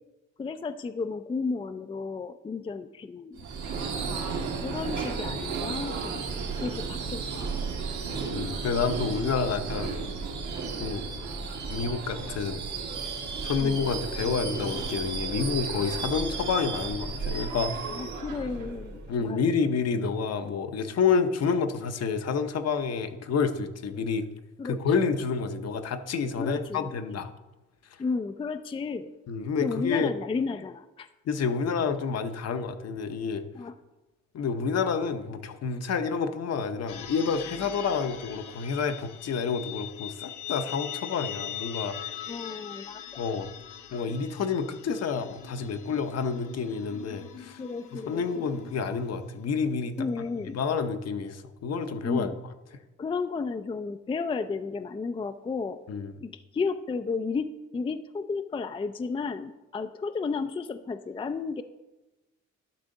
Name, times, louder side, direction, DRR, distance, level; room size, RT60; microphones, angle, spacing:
voice 1, 0.4-3.4 4.0-7.4 13.6-13.9 17.9-19.4 24.6-24.8 26.4-27.0 28.0-29.1 29.6-31.1 33.5-33.8 42.3-43.0 47.3-48.2 50.0-50.6 52.0-52.4 53.0-55.8 56.2-61.6, left 4 dB, 20° left, 10 dB, 0.4 m, -33 dB
Subway metro underground / Screech, 3.4-19.3, right 4 dB, 75° right, 1.8 m, -33 dB
voice 2, 8.3-9.9 10.8-11.1 11.7-12.6 13.4-18.1 19.1-24.2 24.6-27.3 29.3-30.1 31.3-33.4 34.3-42.0 43.2-43.5 43.9-47.6 47.9-50.1 50.5-52.3 55.9-56.1, left 5 dB, 55° left, 9 dB, 0.8 m, -29 dB
sound 1, 36.9-49.4, left 11 dB, 85° left, 1.0 m, -41 dB
11.5 x 6.2 x 3.8 m, 1.1 s
cardioid pair, 90°, 30 cm